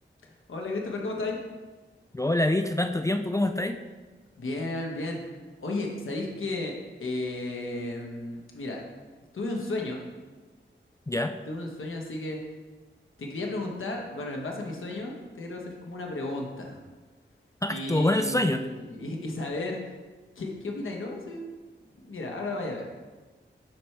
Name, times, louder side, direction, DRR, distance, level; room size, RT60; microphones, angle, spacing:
voice 1, 0.2-1.4 4.4-5.2 5.6-6.7 7.0-8.8 9.3-10.1 11.5-12.4 13.2-16.8 17.7-19.8 20.4-21.5 22.0-22.8, left 2 dB, 90° left, 0 dB, 1.1 m, -33 dB
voice 2, 2.1-3.8 11.1-11.3 17.6-18.6, left 1 dB, 15° left, 7 dB, 0.3 m, -25 dB
10.5 x 4.4 x 3.3 m, 1.3 s
wide cardioid pair, 95°, 20 cm